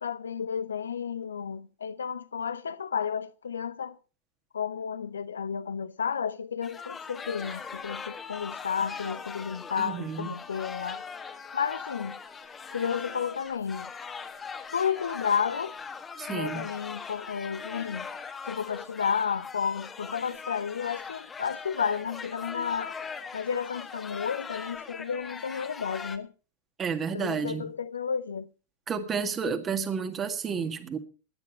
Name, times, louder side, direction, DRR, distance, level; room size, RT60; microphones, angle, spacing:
voice 1, 0.0-4.0 4.5-11.0 11.5-12.2 12.7-13.9 14.7-15.7 16.3-18.1 18.5-22.9 23.3-26.3 27.1-28.5, left 7 dB, 70° left, 0.6 m, -32 dB
sound 1, 6.6-26.2, left 5 dB, 20° left, 1.5 m, -40 dB
voice 2, 9.8-10.3 16.2-16.7 26.8-27.7 28.9-31.0, right 6 dB, 25° right, 1.9 m, -31 dB
17.0 x 10.5 x 4.2 m
figure-of-eight pair, 90°, 0 cm